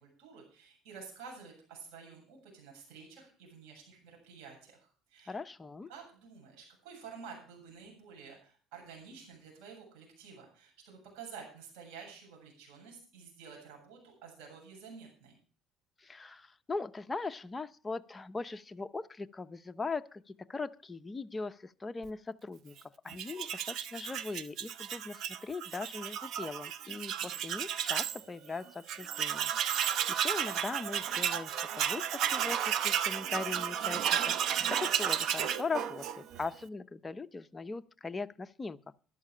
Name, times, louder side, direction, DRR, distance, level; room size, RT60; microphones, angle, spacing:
voice 1, 0.0-5.4 5.9-15.4, right 6 dB, 85° right, 0 dB, 7.5 m, -50 dB
voice 2, 5.3-5.9 16.0-22.8 23.0-29.5 29.8-38.8, left 4 dB, 20° left, 10 dB, 0.7 m, -40 dB
Tools, 23.1-28.2 28.6-28.7 28.9-36.5, right 9 dB, 65° right, 0.7 m, -33 dB
13.0 x 11.5 x 5.0 m, 0.41 s
cardioid pair, 105°, 0 cm